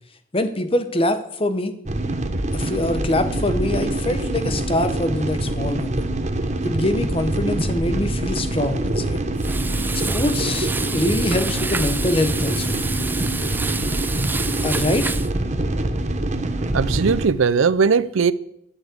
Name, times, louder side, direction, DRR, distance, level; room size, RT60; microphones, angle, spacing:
voice 1, 0.3-1.7 2.5-6.1 6.6-9.3 9.9-13.1 14.1-14.2 14.6-15.1, left 1 dB, 25° left, 0.9 m, -24 dB
sound 1, 1.9-17.3, right 1 dB, 35° right, 1.1 m, -24 dB
Frying (food), 9.4-15.3, right 4 dB, 10° right, 0.4 m, -29 dB
voice 2, 16.7-18.3, right 5 dB, 80° right, 0.5 m, -18 dB
12.0 x 7.1 x 8.0 m
head